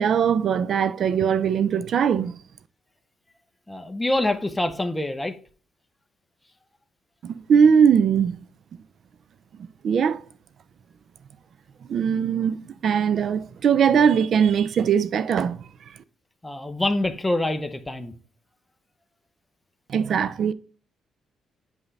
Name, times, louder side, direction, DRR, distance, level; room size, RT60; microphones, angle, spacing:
voice 1, 0.0-2.4 7.2-8.4 9.8-10.2 11.9-12.6 12.8-15.6 19.9-20.5, right 7 dB, 60° right, 0.4 m, -20 dB
voice 2, 3.7-5.3 16.4-18.1, left 1 dB, 10° left, 0.7 m, -25 dB
8.1 x 5.4 x 3.3 m
cardioid pair, 90°, 0 cm